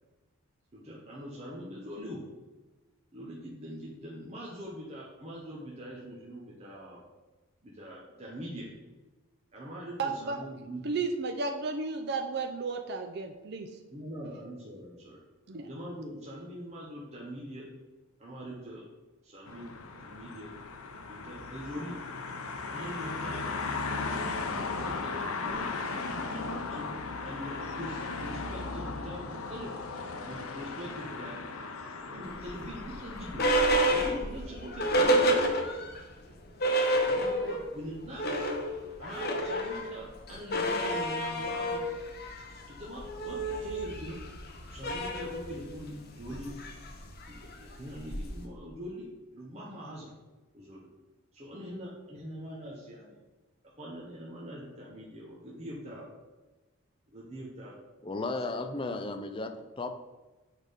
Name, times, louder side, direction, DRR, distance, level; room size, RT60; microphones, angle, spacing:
voice 1, 0.7-2.2 3.1-7.0 7.6-8.7 9.5-10.9 13.9-15.2 15.6-17.7 18.2-18.8 19.2-19.7 20.0-20.5 21.1-22.0 22.7-23.6 24.1-25.7 26.3-29.7 30.2-31.4 32.1-33.5 33.9-35.6 37.0-38.5 39.0-41.8 42.7-44.2 44.7-46.5 47.3-49.1 49.3-50.1 50.5-50.9 51.3-53.2 53.8-56.1 57.1-57.7 58.6-58.9, equal, 30° right, -5 dB, 1.1 m, -43 dB
voice 2, 10.0-10.4 10.9-13.7 15.5-15.7, right 4 dB, 50° right, 5 dB, 0.5 m, -33 dB
sound 1, 19.5-33.5, left 3 dB, 80° left, 0.7 m, -37 dB
sound 2, 32.4-36.0 36.3-36.4 36.6-37.7 38.0-48.5, right 1 dB, 45° left, 1.0 m, -30 dB
voice 3, 58.0-59.9, left 3 dB, 25° left, 6 dB, 0.4 m, -34 dB
6.5 x 4.9 x 5.1 m, 1.2 s
head